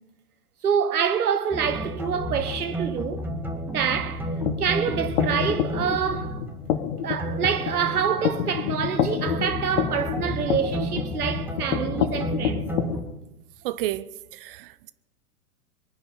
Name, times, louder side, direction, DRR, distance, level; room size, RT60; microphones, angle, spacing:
voice 1, 0.6-3.3 3.7-4.3 4.6-6.4 7.0-12.7, right 7 dB, 70° right, 1.7 m, -26 dB
sound 1, 1.5-9.0 9.3-13.0, right 1 dB, 5° right, 1.7 m, -32 dB
sound 2, 4.3-13.0, left 9 dB, 50° left, 1.6 m, -29 dB
voice 2, 13.6-14.9, right 14 dB, 35° right, 0.6 m, -32 dB
23.0 x 9.7 x 5.7 m
figure-of-eight pair, 105°, 46 cm